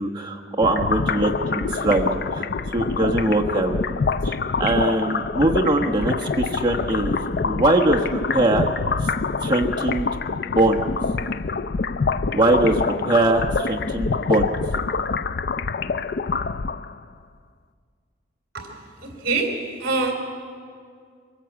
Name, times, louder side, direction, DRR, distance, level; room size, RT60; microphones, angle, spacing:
voice 1, 0.0-2.1 2.3-3.8 4.1-8.7 9.0-9.1 9.4-10.9 12.3-14.5, right 2 dB, 25° right, 0 dB, 1.2 m, -22 dB
sound 1, 0.6-17.0, left 4 dB, 55° left, 0.5 m, -26 dB
voice 2, 18.5-20.1, right 3 dB, 50° right, 2 dB, 3.4 m, -26 dB
24.0 x 16.5 x 8.2 m, 2.1 s
head